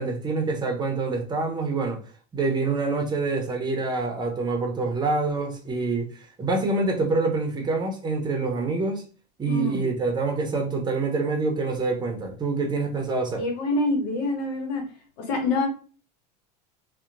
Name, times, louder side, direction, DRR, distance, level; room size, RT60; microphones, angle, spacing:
voice 1, 0.0-2.0 2.3-6.1 6.4-9.0 9.4-13.4, right 3 dB, 20° right, 0.7 m, -26 dB
voice 2, 9.5-9.9 13.4-14.8 15.2-15.7, left 2 dB, 75° left, 1.0 m, -26 dB
2.8 x 2.2 x 2.5 m
supercardioid pair, 95°, 21 cm